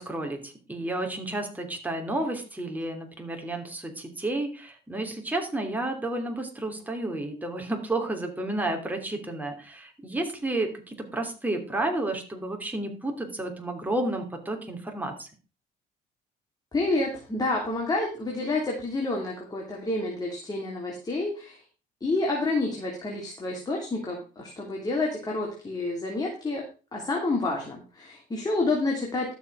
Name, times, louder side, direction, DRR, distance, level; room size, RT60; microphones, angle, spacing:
voice 1, 0.0-15.3, right 2 dB, 10° right, 3 dB, 2.9 m, -31 dB
voice 2, 16.7-21.6 22.0-26.6 26.9-29.3, left 2 dB, 25° left, -1 dB, 3.0 m, -29 dB
12.0 x 7.3 x 4.8 m, 0.35 s
cardioid pair, 110°, 17 cm